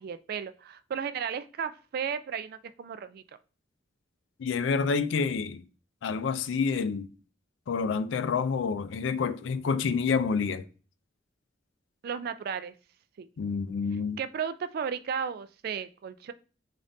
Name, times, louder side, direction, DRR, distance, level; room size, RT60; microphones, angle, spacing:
voice 1, 0.0-3.2 12.0-12.7 13.2-13.3 14.2-16.3, right 7 dB, 55° right, 0.3 m, -34 dB
voice 2, 4.4-5.6 6.0-7.1 7.7-10.6 13.4-14.2, left 5 dB, 80° left, 0.4 m, -28 dB
5.1 x 2.5 x 2.6 m
head